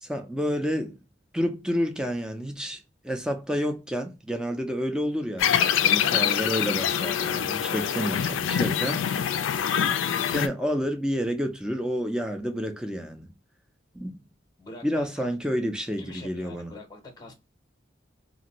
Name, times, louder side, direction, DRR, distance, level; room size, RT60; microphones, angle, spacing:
voice 1, 0.0-1.0 1.3-5.5 5.8-9.0 10.3-13.3 13.9-14.1 14.8-16.7, equal, 5° right, 0.4 m, -29 dB
sound 1, 5.4-10.5, left 8 dB, 90° left, 0.3 m, -25 dB
voice 2, 14.6-15.3 16.0-17.3, left 2 dB, 20° left, 0.7 m, -44 dB
2.5 x 2.5 x 2.9 m
head